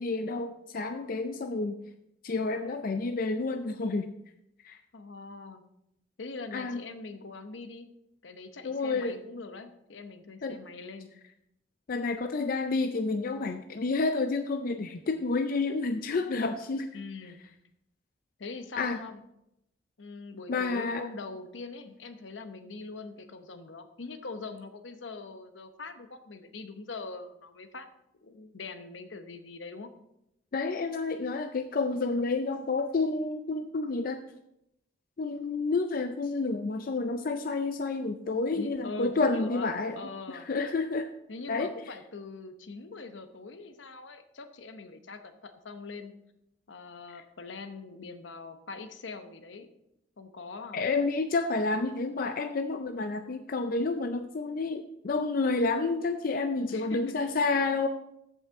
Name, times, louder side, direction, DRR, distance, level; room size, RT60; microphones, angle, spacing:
voice 1, 0.0-1.8 2.2-4.1 4.6-4.8 6.5-6.8 8.6-9.2 10.4-10.6 11.9-16.9 18.8-19.0 20.5-21.0 30.5-34.2 35.2-40.0 40.3-41.1 41.5-41.7 47.1-47.2 50.7-57.9, left 3 dB, 45° left, 7 dB, 0.4 m, -29 dB
voice 2, 4.9-5.6 6.2-7.9 8.2-11.1 16.9-17.4 18.4-19.2 20.0-27.9 28.2-29.9 38.5-39.7 39.9-40.5 41.3-46.1 46.7-49.7 50.2-50.9 56.7-57.4, left 3 dB, 75° left, 8 dB, 0.8 m, -42 dB
14.5 x 5.5 x 3.6 m, 0.82 s
head